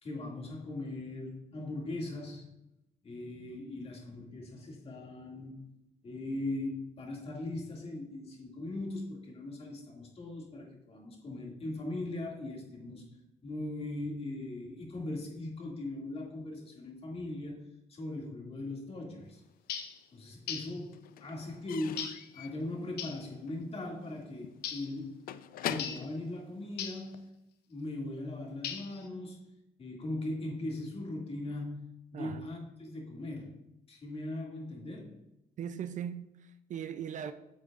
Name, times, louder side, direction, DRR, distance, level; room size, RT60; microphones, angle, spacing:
voice 1, 0.0-2.5 3.0-5.6 6.0-13.0 13.4-17.6 17.9-19.4 20.1-25.2 25.6-27.3 27.7-29.4 29.8-33.6 33.9-35.2, left 2 dB, 35° left, 2.2 m, -39 dB
Slam / Squeak / Wood, 19.4-20.3 20.5-27.3, left 10 dB, 60° left, 0.5 m, -44 dB
sound 1, 19.7-20.0 20.5-20.8 22.0-22.3 23.0-23.2 24.6-24.9 25.8-26.1 26.8-27.1 28.6-29.1, left 8 dB, 75° left, 0.9 m, -39 dB
voice 2, 32.1-32.5 35.6-37.3, right 8 dB, 45° right, 0.5 m, -39 dB
9.4 x 6.5 x 2.4 m
cardioid pair, 110°, 17 cm